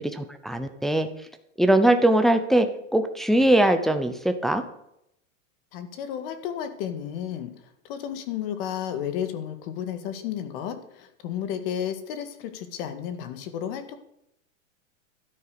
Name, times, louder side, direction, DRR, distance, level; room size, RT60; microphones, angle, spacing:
voice 1, 0.1-1.1 1.6-2.7 2.9-4.6, right 1 dB, ahead, 6 dB, 0.6 m, -21 dB
voice 2, 5.7-14.0, left 9 dB, 45° left, 9 dB, 1.9 m, -32 dB
13.0 x 9.7 x 6.9 m, 0.77 s
supercardioid pair, 155°, 41 cm